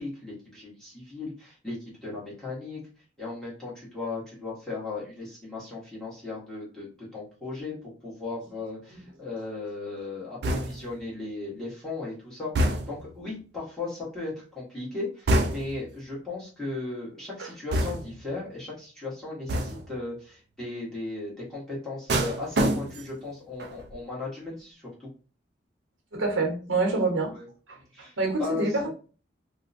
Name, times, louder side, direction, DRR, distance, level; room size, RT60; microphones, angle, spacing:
voice 1, 0.0-2.8 3.2-25.1 27.3-27.5 27.9-28.6, left 3 dB, 5° left, 1.2 m, -37 dB
sound 1, 10.4-11.0 12.6-13.1 15.3-15.9 17.7-18.3 19.5-20.0 22.1-23.2 23.6-24.0, right 1 dB, 55° right, 0.3 m, -27 dB
voice 2, 26.1-27.4 27.7-28.9, right 3 dB, 90° right, 0.9 m, -27 dB
2.7 x 2.2 x 2.6 m
head